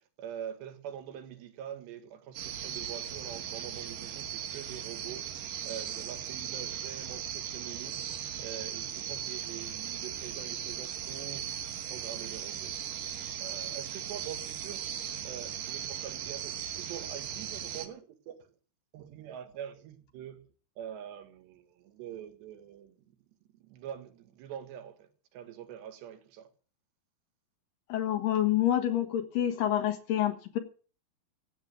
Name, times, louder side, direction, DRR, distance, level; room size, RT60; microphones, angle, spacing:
voice 1, 0.2-11.5 11.9-12.8 13.4-14.9 15.2-18.5 18.9-20.4 20.8-23.2 23.6-26.5, right 9 dB, 80° right, 3.7 m, -44 dB
sound 1, 2.4-17.9, right 9 dB, 60° right, 2.6 m, -38 dB
voice 2, 27.9-30.6, left 11 dB, 65° left, 2.8 m, -28 dB
15.5 x 8.7 x 7.5 m
omnidirectional pair, 4.9 m